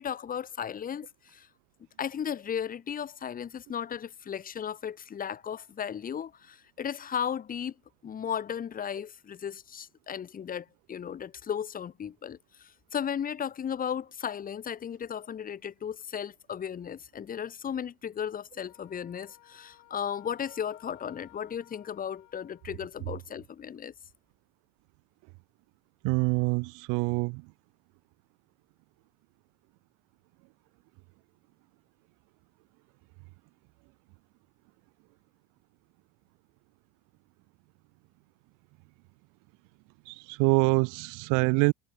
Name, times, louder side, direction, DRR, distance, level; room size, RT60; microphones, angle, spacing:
voice 1, 0.0-1.5 2.0-7.7 8.0-23.9, left 8 dB, 25° left, 1.2 m, -35 dB
Wind instrument woodwind instrument, 18.7-22.8, left 23 dB, 70° left, 6.9 m, -57 dB
voice 2, 26.0-27.4 40.3-41.7, right 33 dB, 80° right, 0.8 m, -25 dB
cardioid pair, 135°, 31 cm